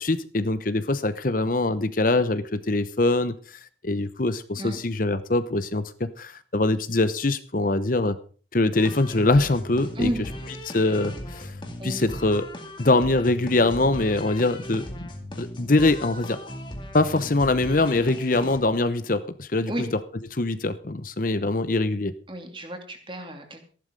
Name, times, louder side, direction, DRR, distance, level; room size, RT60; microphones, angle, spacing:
voice 1, 0.0-8.2 8.5-10.1 10.7-11.5 11.8-12.5 12.8-15.1 15.4-16.4 16.9-19.7 20.3-22.1, left 2 dB, 45° left, 12 dB, 0.9 m, -23 dB
sound 1, 8.8-18.6, left 1 dB, 25° left, 2.3 m, -37 dB
voice 2, 9.9-10.3 11.8-12.1 19.7-19.9 22.3-23.6, equal, 25° right, 5 dB, 2.7 m, -31 dB
15.0 x 11.5 x 5.2 m, 0.41 s
head